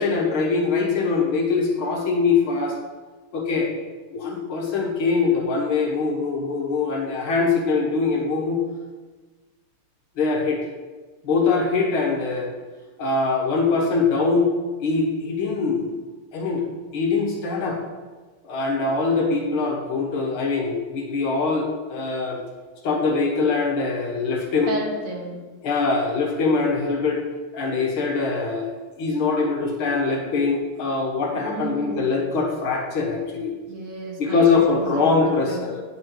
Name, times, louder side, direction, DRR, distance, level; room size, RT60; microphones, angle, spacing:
voice 1, 0.0-2.8 3.3-3.7 4.1-8.6 10.2-10.7 11.2-12.5 13.0-14.5 14.8-15.9 16.3-16.6 16.9-17.8 18.4-22.4 22.8-24.7 25.6-27.2 27.5-33.5 34.2-35.8, left 4 dB, 70° left, 0 dB, 2.0 m, -23 dB
voice 2, 24.7-25.4 31.4-32.1 33.7-35.7, right 2 dB, 90° right, -2 dB, 2.6 m, -33 dB
10.0 x 4.3 x 4.5 m, 1.3 s
omnidirectional pair, 2.4 m